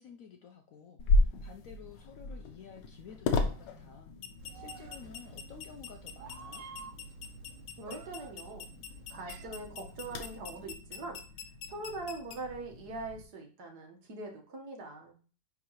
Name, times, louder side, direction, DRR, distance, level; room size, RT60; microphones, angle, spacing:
voice 1, 0.0-4.1 4.5-6.6, left 6 dB, 70° left, 4 dB, 0.8 m, -52 dB
sound 1, 1.0-13.2, left 3 dB, 90° left, 1.5 m, -35 dB
Meow, 4.4-10.7, right 4 dB, 85° right, 1.4 m, -50 dB
voice 2, 7.8-8.7 9.1-11.2 11.7-15.2, right 2 dB, 65° right, 2 dB, 1.8 m, -42 dB
9.5 x 3.7 x 2.9 m, 0.40 s
omnidirectional pair, 1.9 m